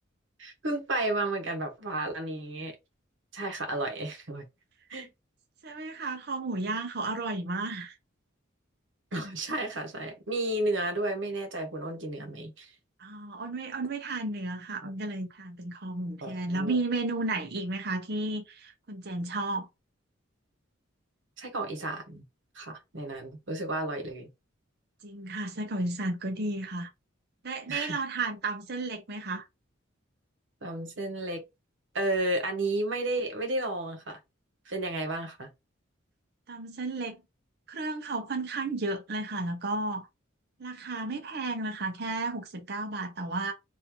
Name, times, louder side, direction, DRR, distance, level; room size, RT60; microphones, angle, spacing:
voice 1, 0.4-2.7 3.3-4.4 4.9-5.1 9.1-12.7 14.8-14.9 16.2-16.8 21.4-22.2 22.5-24.3 27.7-28.0 30.6-31.4 31.9-34.2 34.7-35.5, right 2 dB, 70° right, 1.1 m, -32 dB
voice 2, 5.6-7.9 13.0-19.7 25.0-26.9 27.4-29.5 36.5-37.2 37.7-40.1 40.6-43.5, right 2 dB, 50° right, 0.7 m, -33 dB
2.9 x 2.7 x 3.6 m
head